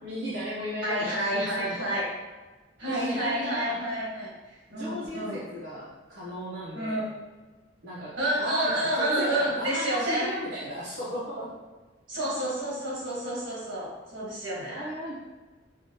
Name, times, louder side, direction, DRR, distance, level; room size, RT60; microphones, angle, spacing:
voice 1, 0.0-1.7 2.9-3.8 4.7-7.1 7.8-11.5 14.7-15.1, equal, 65° right, -9 dB, 0.8 m, -35 dB
voice 2, 0.8-2.0 2.8-4.3 4.7-5.4 6.7-7.1 8.2-10.3 12.1-14.9, right 1 dB, 85° right, -5 dB, 1.4 m, -29 dB
4.8 x 2.4 x 2.8 m, 1.3 s
head